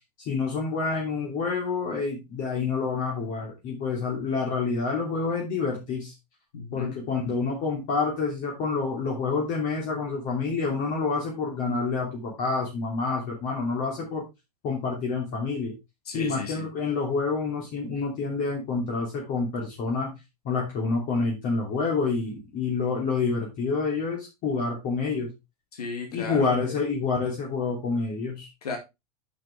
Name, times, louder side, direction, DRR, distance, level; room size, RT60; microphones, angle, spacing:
voice 1, 0.3-6.1 6.7-14.3 14.6-15.7 16.1-20.1 20.4-25.3 26.1-28.5, left 4 dB, 40° left, -2 dB, 2.9 m, -28 dB
voice 2, 6.5-6.9 16.1-16.7 25.7-26.7 28.6-28.8, left 5 dB, 70° left, 4 dB, 2.3 m, -34 dB
8.7 x 6.3 x 3.4 m, 0.23 s
figure-of-eight pair, 85°, 21 cm